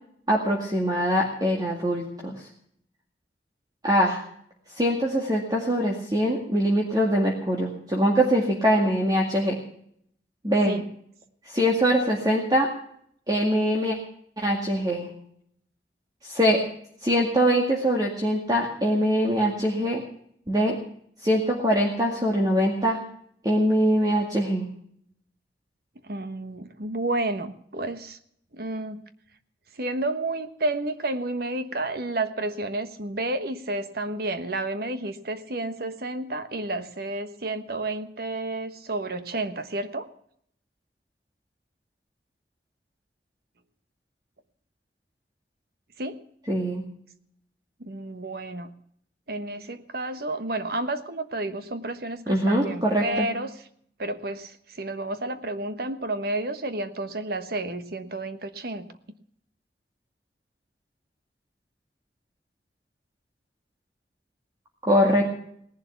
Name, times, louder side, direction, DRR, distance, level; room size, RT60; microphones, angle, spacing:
voice 1, 0.3-2.5 3.8-4.2 4.8-9.6 10.4-10.8 11.4-12.7 13.3-14.0 14.4-15.1 16.2-16.6 17.0-20.0 20.5-20.8 21.2-23.0 23.4-24.7 46.5-46.8 52.3-53.3 64.8-65.2, equal, 20° right, -1 dB, 2.1 m, -23 dB
voice 2, 26.0-28.2 28.5-29.0 29.7-40.1 46.0-46.2 47.8-48.7 49.3-53.6 54.0-58.9, right 2 dB, 60° right, 10 dB, 1.2 m, -31 dB
18.5 x 11.0 x 5.9 m, 0.67 s
head